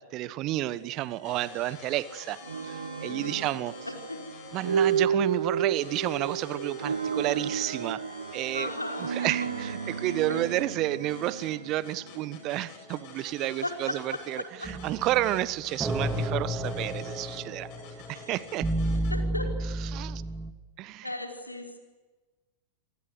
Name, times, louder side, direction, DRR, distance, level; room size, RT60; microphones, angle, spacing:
voice 1, 0.0-3.7 4.5-8.0 8.3-8.7 9.1-17.7 18.1-18.7 19.9-20.2 20.8-21.1, right 15 dB, 40° right, 17 dB, 1.3 m, -31 dB
sound 1, 0.6-19.1, left 7 dB, 45° left, 7.5 m, -49 dB
sound 2, 2.4-12.5, right 7 dB, 75° right, 1.5 m, -32 dB
voice 2, 3.0-3.5 3.8-4.3 8.5-9.7 10.3-10.4 13.6-14.2 14.6-14.7 18.1-18.3 19.1-19.5 21.0-21.8, left 1 dB, 85° left, 2 dB, 4.9 m, -36 dB
sound 3, 14.6-20.5, right 1 dB, 10° right, 2.7 m, -32 dB
27.5 x 26.0 x 8.0 m, 1.3 s
figure-of-eight pair, 90°, 0 cm